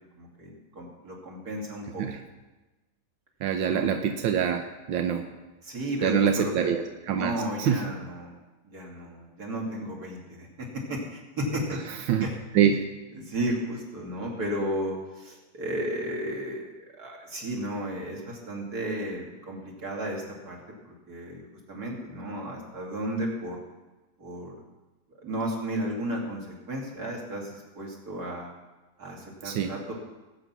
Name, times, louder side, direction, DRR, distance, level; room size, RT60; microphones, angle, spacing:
voice 1, 0.2-2.0 3.7-4.0 5.6-6.7 7.2-8.4 8.7-11.8 12.2-12.3 13.1-16.7 17.0-20.6 20.9-23.6 24.2-24.5 25.2-28.5 29.0-29.9, equal, 50° right, -1 dB, 3.3 m, -33 dB
voice 2, 3.4-5.3 6.0-7.8 11.9-12.3 12.5-12.8 29.4-29.7, right 8 dB, 90° right, 5 dB, 1.6 m, -25 dB
19.0 x 8.9 x 6.1 m, 1.1 s
omnidirectional pair, 2.1 m